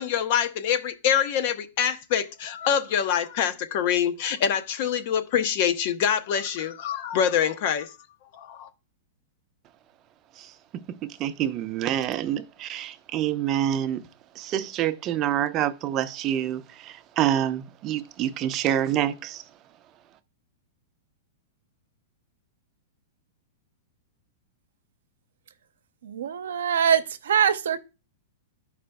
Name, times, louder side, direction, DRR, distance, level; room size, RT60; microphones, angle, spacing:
voice 1, 0.0-7.9 8.3-8.7, left 8 dB, 50° left, 0.8 m, -25 dB
voice 2, 11.0-14.0 14.4-19.4, right 11 dB, 30° right, 0.6 m, -27 dB
voice 3, 26.0-27.8, right 8 dB, 85° right, 0.7 m, -23 dB
12.0 x 5.0 x 2.2 m
hypercardioid pair, 140°, 0 cm